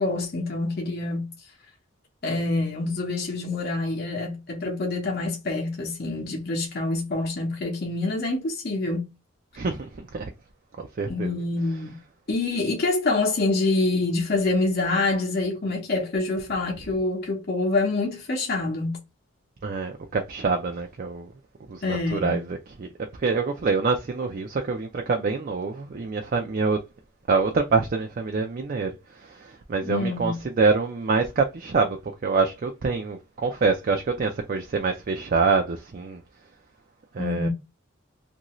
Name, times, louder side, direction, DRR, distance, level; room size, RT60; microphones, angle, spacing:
voice 1, 0.0-1.3 2.2-9.1 11.1-12.0 12.3-19.0 21.8-22.4 29.8-30.4 37.2-37.5, left 2 dB, 50° left, 0.8 m, -26 dB
voice 2, 9.5-10.3 10.8-11.3 19.6-21.3 21.7-26.8 27.3-28.9 29.2-36.2 37.1-37.5, right 4 dB, 45° right, 0.4 m, -26 dB
2.8 x 2.6 x 3.0 m
head